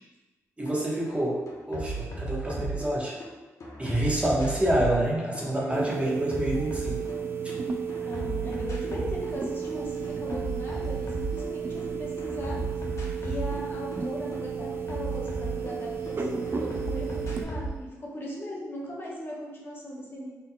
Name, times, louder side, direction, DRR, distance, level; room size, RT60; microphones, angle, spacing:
voice 1, 0.6-1.4 1.7-3.2 3.8-7.1 7.4-7.5, right 1 dB, 20° right, -4 dB, 1.1 m, -27 dB
sound 1, 0.7-0.8 1.1-3.3 3.6-7.6 7.9-9.4 9.6-11.9 12.2-16.2 16.5-17.8, right 2 dB, 55° left, 0.9 m, -35 dB
voice 2, 5.5-5.9 8.0-12.6 13.2-20.4, equal, 35° left, -5 dB, 1.2 m, -38 dB
sound 2, 5.7-17.4, right 6 dB, 40° right, 0.4 m, -33 dB
Bell / Train, 9.3-17.8, equal, 75° right, 1.0 m, -49 dB
4.0 x 3.8 x 2.2 m, 1.2 s
supercardioid pair, 55°, 6 cm